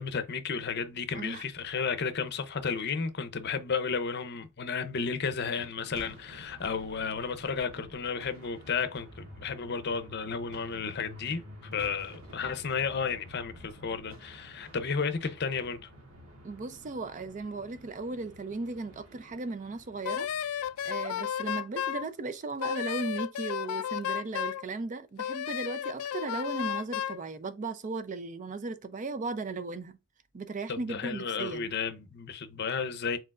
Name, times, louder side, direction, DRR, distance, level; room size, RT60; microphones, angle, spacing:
voice 1, 0.0-11.4 11.7-15.9 30.7-33.2, left 5 dB, 50° left, 0.6 m, -33 dB
sound 1, 5.4-21.7, right 1 dB, 70° right, 1.6 m, -53 dB
sound 2, 8.6-22.5, left 1 dB, 85° right, 1.4 m, -54 dB
voice 2, 16.4-20.5 20.9-30.0 30.3-31.7, right 3 dB, 35° right, 0.4 m, -36 dB
Wind instrument woodwind instrument, 20.0-22.0 22.6-24.6 25.2-27.2, left 10 dB, 85° left, 0.3 m, -33 dB
4.5 x 3.8 x 2.4 m
head